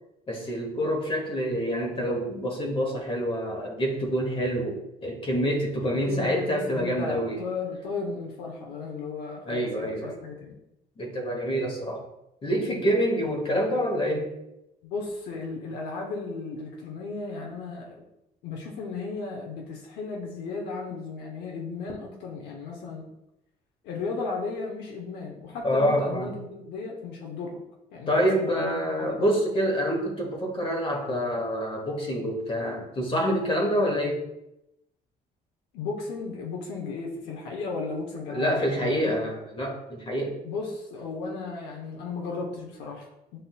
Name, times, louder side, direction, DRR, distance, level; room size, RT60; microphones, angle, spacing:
voice 1, 0.3-7.4 9.5-10.2 11.0-12.0 12.4-14.3 25.6-26.3 28.1-34.2 38.3-40.4, equal, 30° left, 0 dB, 0.9 m, -27 dB
voice 2, 6.1-10.6 14.8-18.0 18.4-23.1 23.8-27.6 27.9-29.3 35.7-39.1 40.4-43.4, left 4 dB, 85° left, 0 dB, 0.8 m, -35 dB
7.6 x 2.5 x 2.2 m, 0.88 s
cardioid pair, 110°, 17 cm